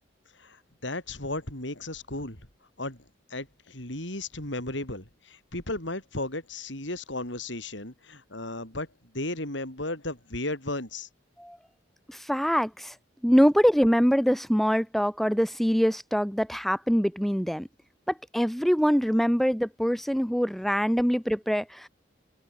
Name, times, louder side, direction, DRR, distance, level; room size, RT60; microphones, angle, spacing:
voice 1, 0.3-2.4 2.8-3.0 3.3-11.1, left 2 dB, 70° left, 6.1 m, -35 dB
voice 2, 12.1-12.9 13.2-17.7 18.1-21.9, equal, ahead, 1.1 m, -24 dB
head